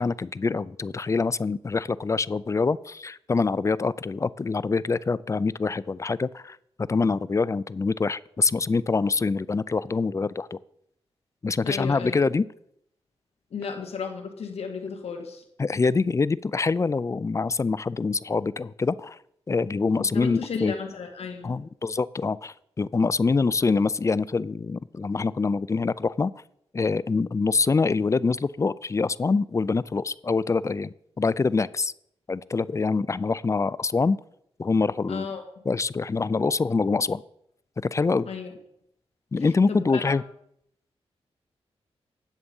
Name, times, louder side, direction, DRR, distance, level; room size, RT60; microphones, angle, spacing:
voice 1, 0.0-6.6 6.9-10.6 11.4-12.4 15.6-19.2 19.5-20.7 21.4-26.3 26.7-31.9 32.3-34.2 34.6-35.3 35.7-37.2 37.9-38.3 39.3-40.2, left 4 dB, 30° left, 20 dB, 0.4 m, -25 dB
voice 2, 11.6-12.2 13.5-15.4 20.1-21.6 35.1-35.4 38.3-38.6 39.4-40.0, left 5 dB, 80° left, 3 dB, 2.1 m, -34 dB
9.9 x 7.8 x 5.4 m, 0.74 s
cardioid pair, 80°, 10 cm